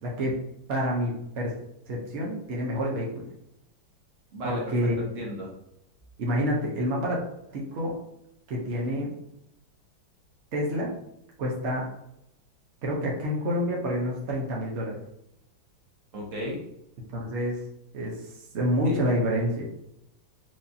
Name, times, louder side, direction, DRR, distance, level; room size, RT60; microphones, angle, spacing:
voice 1, 0.0-0.4 0.7-1.5 1.9-3.3 4.4-4.9 6.2-7.2 7.5-7.9 8.5-9.1 10.5-10.9 11.4-11.9 12.8-15.0 17.1-17.6 17.9-19.6, equal, 70° right, -3 dB, 0.6 m, -28 dB
voice 2, 4.3-5.5 16.1-16.6 18.8-19.0, equal, 50° right, -2 dB, 1.1 m, -35 dB
4.7 x 2.7 x 2.6 m, 0.80 s
omnidirectional pair, 2.2 m